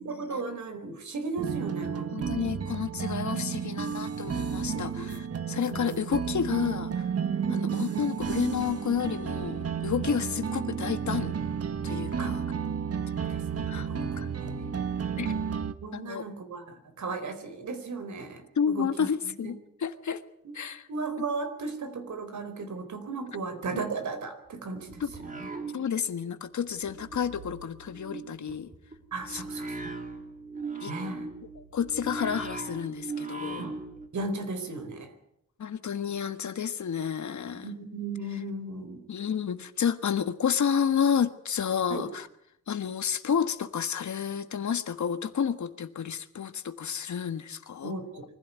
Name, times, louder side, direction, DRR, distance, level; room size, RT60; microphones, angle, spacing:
voice 1, 0.0-2.5 3.5-3.6 4.5-5.1 5.7-5.9 7.4-8.2 10.0-10.3 12.2-12.4 13.2-14.7 15.8-19.5 20.4-20.5 20.9-25.9 29.1-29.9 30.9-31.3 33.6-33.7 34.1-35.2 37.5-39.0 41.9-42.1 47.8-48.3, right 3 dB, 75° right, 8 dB, 4.4 m, -36 dB
sound 1, 1.4-15.7, right 7 dB, 55° right, 1.4 m, -32 dB
voice 2, 2.1-5.2 5.5-7.1 7.5-11.4 11.8-12.4 13.7-13.9 14.2-14.3 15.2-15.3 15.9-16.2 18.6-20.2 20.5-20.8 25.0-25.1 25.7-28.7 29.3-29.4 30.8-30.9 31.6-33.6 35.6-37.7 39.1-42.3 42.7-47.9, left 7 dB, 70° left, 11 dB, 1.5 m, -30 dB
sound 2, 24.5-26.3 26.6-34.1, right 3 dB, 25° right, 3.5 m, -39 dB
24.5 x 16.0 x 9.5 m, 0.74 s
wide cardioid pair, 125°, 30 cm